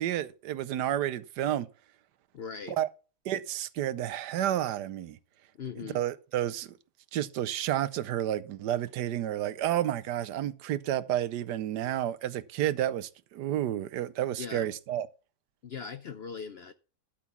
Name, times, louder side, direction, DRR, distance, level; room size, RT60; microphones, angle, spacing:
voice 1, 0.0-1.7 2.7-2.9 3.2-5.2 5.8-6.8 7.1-15.1, right 12 dB, 75° right, 1.3 m, -31 dB
voice 2, 2.3-2.8 5.6-6.0 14.4-14.7 15.6-16.7, left 6 dB, 65° left, 0.6 m, -40 dB
12.5 x 6.0 x 5.9 m
omnidirectional pair, 1.8 m